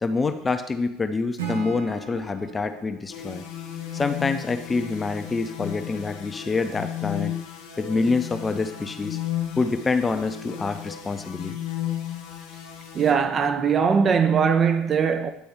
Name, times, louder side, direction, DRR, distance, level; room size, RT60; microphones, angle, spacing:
voice 1, 0.0-3.4 3.9-7.3 7.8-9.2 9.6-11.6, left 4 dB, 20° left, 0.6 m, -26 dB
Acoustic guitar / Strum, 1.4-4.5, right 7 dB, 75° right, 0.8 m, -38 dB
sound 1, 3.1-13.1, left 11 dB, 65° left, 1.0 m, -34 dB
voice 2, 12.9-15.3, right 6 dB, 35° right, 0.5 m, -20 dB
9.3 x 4.3 x 3.5 m
figure-of-eight pair, 65°, 0 cm